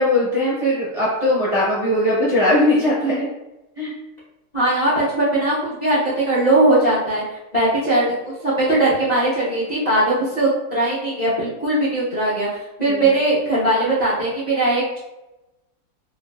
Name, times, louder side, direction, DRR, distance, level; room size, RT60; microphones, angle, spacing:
voice 1, 0.0-3.3 3.8-3.9 12.9-13.1, left 1 dB, 30° right, -9 dB, 0.6 m, -19 dB
voice 2, 4.5-7.2 7.5-12.5 12.8-15.0, right 1 dB, 30° left, -10 dB, 0.8 m, -19 dB
3.9 x 2.5 x 2.2 m, 0.97 s
omnidirectional pair, 1.9 m